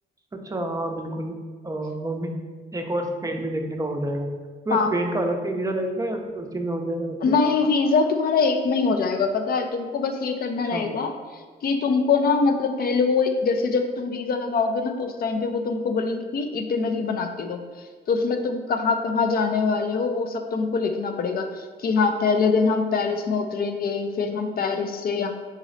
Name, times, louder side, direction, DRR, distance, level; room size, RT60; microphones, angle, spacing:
voice 1, 0.3-1.4 1.6-2.4 2.7-4.3 4.7-7.2 10.7-10.9, right 1 dB, 15° right, 3 dB, 0.5 m, -28 dB
voice 2, 7.2-17.6 18.1-25.3, left 4 dB, 50° left, 6 dB, 0.5 m, -23 dB
4.0 x 3.0 x 3.8 m, 1.4 s
cardioid pair, 90°, 20 cm